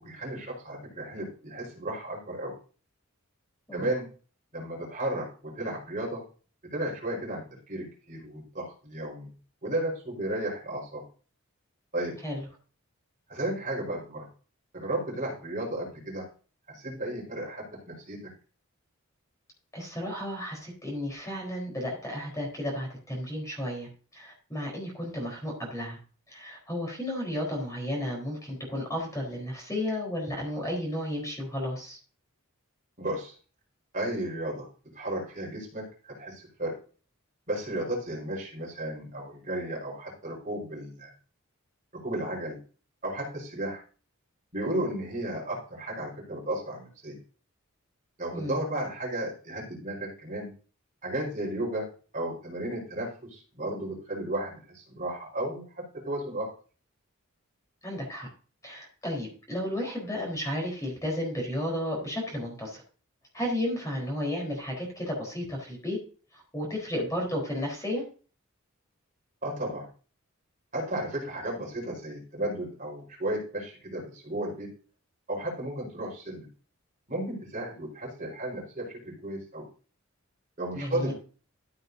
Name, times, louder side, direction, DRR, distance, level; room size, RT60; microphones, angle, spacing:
voice 1, 0.0-2.5 3.7-4.1 4.5-6.2 6.7-9.3 9.6-11.0 11.9-12.1 13.3-14.3 14.7-16.3 16.7-18.3 33.0-33.3 33.9-34.7 34.9-36.8 37.5-41.1 41.9-42.6 43.0-43.8 44.5-47.2 48.2-50.5 51.0-56.5 69.4-69.9 70.7-74.7 75.3-76.5 77.1-79.6 80.6-81.1, right 1 dB, 40° right, -3 dB, 4.6 m, -34 dB
voice 2, 19.7-26.0 26.3-32.0 48.3-48.6 57.8-58.3 58.6-62.8 63.3-66.0 66.3-68.0 80.7-81.1, left 1 dB, 15° left, -1 dB, 4.1 m, -33 dB
14.0 x 7.8 x 2.7 m, 0.37 s
head